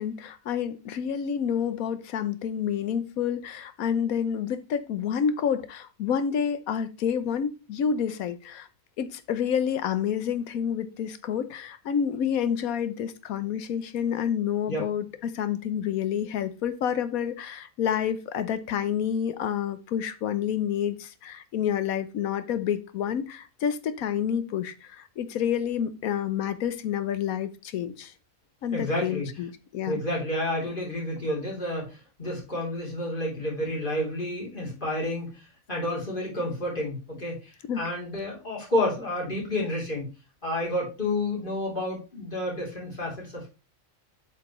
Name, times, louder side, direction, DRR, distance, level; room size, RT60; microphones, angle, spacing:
voice 1, 0.0-8.7 9.0-28.1 28.6-30.0 37.7-37.8, left 8 dB, 80° left, 1.2 m, -29 dB
voice 2, 28.7-29.4 29.8-40.1 40.4-43.5, left 1 dB, 35° left, 3.4 m, -30 dB
8.0 x 5.7 x 3.1 m
omnidirectional pair, 1.5 m